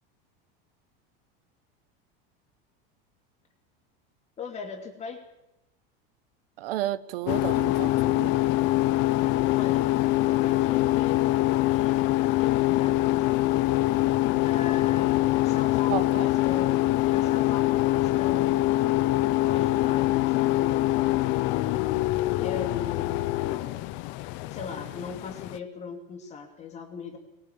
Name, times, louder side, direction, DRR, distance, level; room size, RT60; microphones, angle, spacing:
voice 1, 4.4-5.2 9.5-9.9 10.3-11.4 11.7-13.2 14.4-15.2 15.4-18.6 19.4-23.8 24.5-27.2, left 6 dB, 25° left, 4 dB, 2.7 m, -39 dB
voice 2, 6.6-8.3 15.9-16.3, right 14 dB, 75° right, 16 dB, 1.3 m, -32 dB
sound 1, 7.3-25.6, left 17 dB, 40° left, 0.8 m, -24 dB
22.0 x 20.5 x 8.7 m, 0.90 s
supercardioid pair, 165°, 29 cm